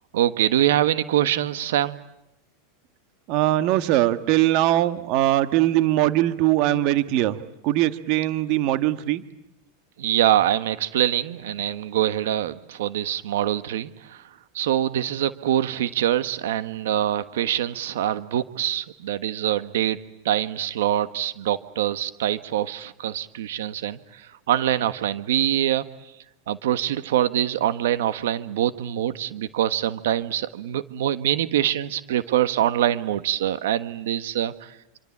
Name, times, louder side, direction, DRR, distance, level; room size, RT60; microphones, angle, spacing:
voice 1, 0.1-2.0 10.0-14.3 14.5-20.0 20.2-26.1 26.5-35.0, right 12 dB, 80° right, 12 dB, 1.4 m, -24 dB
voice 2, 3.3-7.4 7.6-9.2, right 14 dB, 50° right, 11 dB, 1.5 m, -21 dB
27.0 x 25.5 x 8.6 m, 0.85 s
supercardioid pair, 145°, 0 cm